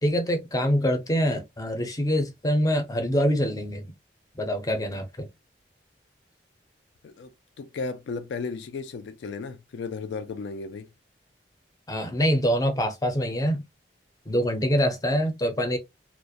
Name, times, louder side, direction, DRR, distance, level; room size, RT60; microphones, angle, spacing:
voice 1, 0.0-3.9 4.4-5.3 11.9-13.6 14.3-15.8, equal, 20° left, 0.5 m, -25 dB
voice 2, 7.0-10.9, left 4 dB, 85° left, 0.3 m, -35 dB
2.3 x 2.0 x 2.6 m
head